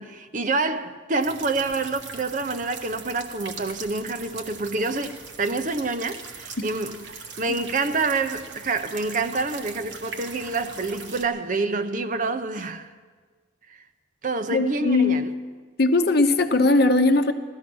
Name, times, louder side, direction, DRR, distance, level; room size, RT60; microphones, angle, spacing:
voice 1, 0.0-12.9 14.2-15.3, right 3 dB, 40° right, 0.7 m, -27 dB
sound 1, 1.2-11.3, right 5 dB, 70° right, 1.5 m, -41 dB
voice 2, 14.5-15.2 15.8-17.3, left 2 dB, 55° left, 0.9 m, -19 dB
16.0 x 13.5 x 6.2 m
head